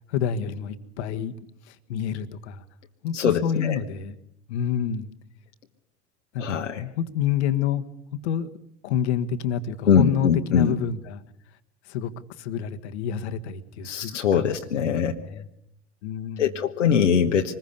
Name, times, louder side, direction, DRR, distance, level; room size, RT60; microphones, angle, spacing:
voice 1, 0.1-1.3 1.7-2.6 3.0-4.1 4.5-5.1 6.3-6.7 7.0-7.8 8.1-8.5 8.8-11.2 11.8-12.1 12.4-14.5 14.8-15.5 16.0-16.5, left 9 dB, 65° left, 8 dB, 1.6 m, -28 dB
voice 2, 3.1-3.8 6.4-6.9 9.9-10.8 13.8-15.1 16.4-17.5, left 7 dB, 80° left, 3 dB, 1.3 m, -22 dB
25.0 x 21.0 x 6.8 m, 0.78 s
figure-of-eight pair, 70°, 36 cm